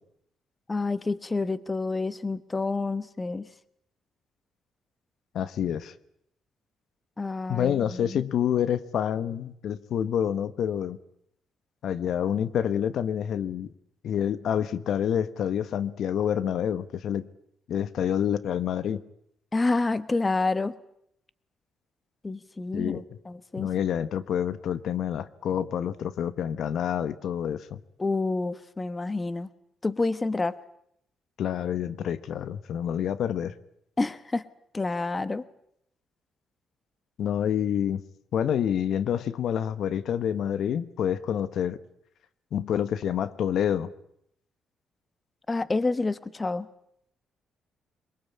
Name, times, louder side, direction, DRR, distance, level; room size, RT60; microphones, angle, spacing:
voice 1, 0.7-3.5 7.2-8.2 19.5-20.7 22.2-23.7 28.0-29.5 29.8-30.6 34.0-34.4 34.7-35.4 45.5-46.7, left 3 dB, 25° left, 14 dB, 1.3 m, -28 dB
voice 2, 5.3-5.9 7.5-11.0 11.8-13.7 14.0-17.3 17.7-19.0 22.7-23.0 23.6-27.8 31.4-33.5 37.2-38.0 38.3-41.8 42.5-43.9, left 9 dB, 70° left, 14 dB, 1.1 m, -28 dB
23.5 x 22.0 x 8.6 m, 0.72 s
cardioid pair, 90°, 0 cm